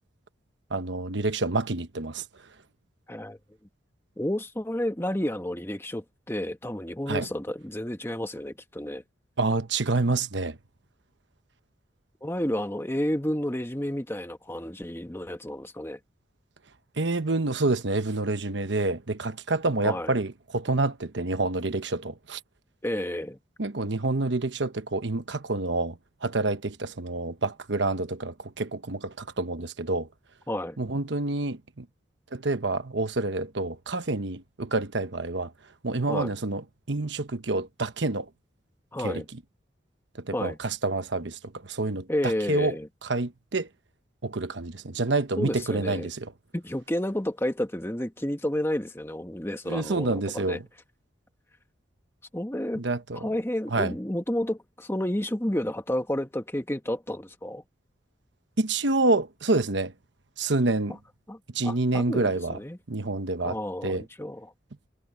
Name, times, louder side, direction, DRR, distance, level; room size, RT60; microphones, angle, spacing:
voice 1, 0.7-2.2 7.1-7.3 9.4-10.6 17.0-22.4 23.6-30.1 30.8-31.9 32.3-35.5 35.8-38.3 39.0-39.2 40.1-42.7 43.0-43.7 44.2-46.3 49.7-50.6 52.7-53.3 53.7-53.9 58.6-59.9 60.4-61.0 61.5-62.6 62.9-64.0, right 2 dB, 70° right, 1.1 m, -28 dB
voice 2, 4.2-9.0 12.2-16.0 19.8-20.1 22.8-23.4 30.5-30.8 36.1-36.3 38.9-39.3 40.3-40.6 42.1-42.9 45.4-46.1 46.5-50.6 52.3-52.8 53.1-57.6 61.3-62.8 63.4-64.5, left 1 dB, 15° left, 1.4 m, -31 dB
head